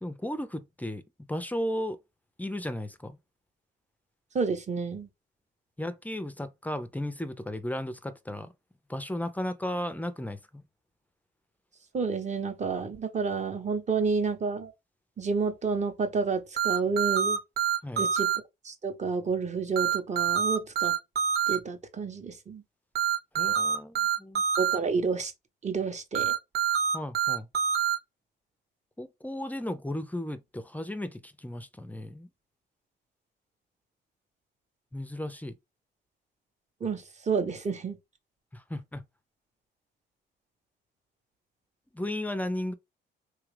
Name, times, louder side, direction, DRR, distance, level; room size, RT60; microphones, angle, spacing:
voice 1, 0.0-1.0 1.3-2.0 2.4-3.2 5.8-8.5 8.9-10.6 17.8-18.1 23.4-24.4 26.9-27.5 29.0-32.3 34.9-35.5 38.5-39.0 41.9-42.7, left 1 dB, 10° left, 0.4 m, -35 dB
voice 2, 4.3-5.1 11.9-14.7 15.2-17.4 18.0-18.3 18.6-20.9 21.5-22.6 24.6-25.3 25.6-26.3 36.8-38.0, right 5 dB, 35° right, 0.8 m, -30 dB
sound 1, 16.6-18.4 19.8-21.6 23.0-24.8 26.1-28.0, right 8 dB, 55° right, 1.0 m, -26 dB
3.2 x 2.4 x 3.2 m
cardioid pair, 90°, 20 cm